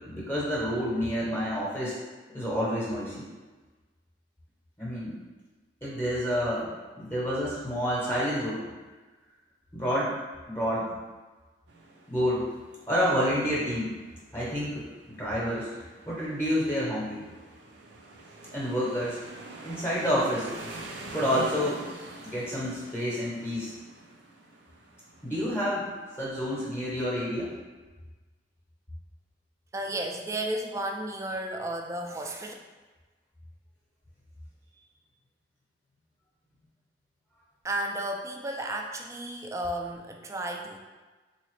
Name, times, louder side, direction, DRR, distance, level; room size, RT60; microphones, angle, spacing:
voice 1, 0.1-2.0 2.3-3.3 4.8-5.1 5.8-8.7 9.7-10.1 10.5-10.9 12.1-12.5 12.9-13.9 14.3-15.7 16.1-17.3 18.5-19.2 19.6-20.5 21.1-21.8 22.2-23.7 25.2-27.5, equal, 15° left, -7 dB, 0.8 m, -29 dB
sound 1, 11.7-26.7, right 2 dB, 80° right, 0.5 m, -46 dB
voice 2, 29.7-32.5 37.6-40.8, right 1 dB, 15° right, 2 dB, 0.3 m, -33 dB
3.9 x 2.8 x 3.1 m, 1.3 s
head